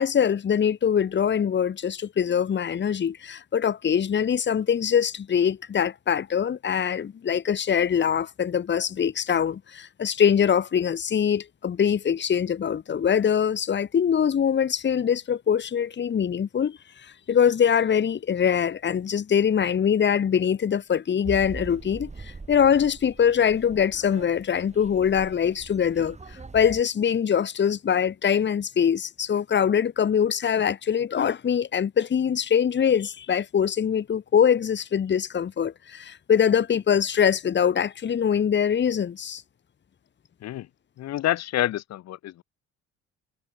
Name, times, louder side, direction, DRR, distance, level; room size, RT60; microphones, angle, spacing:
voice 1, 0.0-16.8 17.3-39.4, left 8 dB, 40° left, 1.4 m, -23 dB
sound 1, 21.2-26.8, right 4 dB, 25° right, 3.4 m, -42 dB
voice 2, 41.0-42.4, left 13 dB, 60° left, 1.2 m, -28 dB
supercardioid pair, 70°, 29 cm